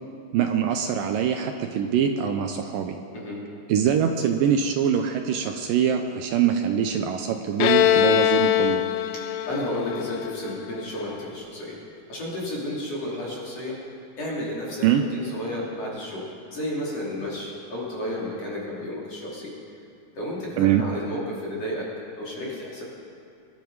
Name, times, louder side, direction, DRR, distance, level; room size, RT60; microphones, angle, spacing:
voice 1, 0.3-3.0 3.7-8.8 14.8-15.0 20.6-20.8, right 8 dB, 80° right, 5 dB, 2.0 m, -23 dB
Bowed string instrument, 7.6-11.2, left 12 dB, 80° left, 2.1 m, -22 dB
voice 2, 9.1-11.8 12.1-13.7 14.2-19.5 20.1-21.9 22.2-22.8, left 1 dB, 40° left, -5 dB, 3.7 m, -32 dB
24.5 x 11.0 x 4.7 m, 2.5 s
omnidirectional pair, 4.7 m